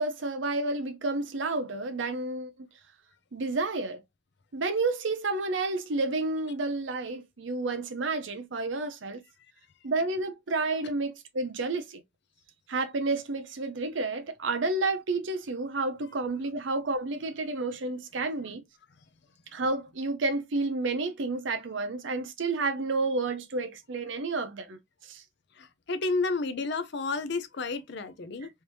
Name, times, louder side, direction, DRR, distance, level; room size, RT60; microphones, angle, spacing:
voice 1, 0.0-2.5 3.3-4.0 4.5-9.2 9.8-12.0 12.7-18.6 19.5-24.8 25.1-25.2, right 3 dB, 70° right, 0.7 m, -30 dB
voice 2, 25.6-28.5, left 3 dB, 60° left, 0.6 m, -31 dB
3.5 x 2.7 x 3.0 m
head